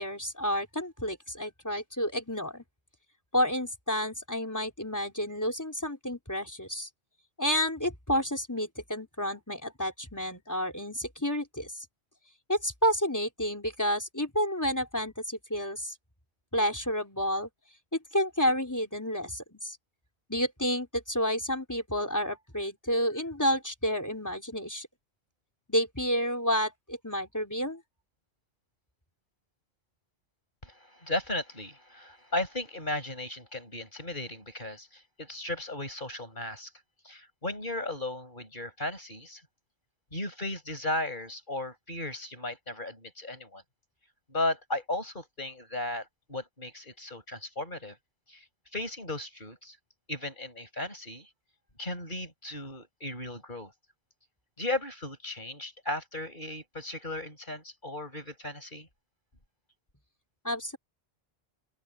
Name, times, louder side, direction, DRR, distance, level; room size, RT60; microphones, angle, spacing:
voice 1, 0.0-2.6 3.3-6.9 7.4-11.9 12.5-15.9 16.5-17.5 18.1-19.8 20.3-24.9 25.7-27.8 60.4-60.8, equal, 15° left, 3.9 m, -30 dB
voice 2, 30.6-36.7 37.0-39.4 40.1-43.6 44.3-48.0 48.3-48.4 48.7-49.8 50.1-51.3 51.8-53.7 54.6-58.9, left 2 dB, 50° left, 7.5 m, -36 dB
open air
omnidirectional pair, 1.1 m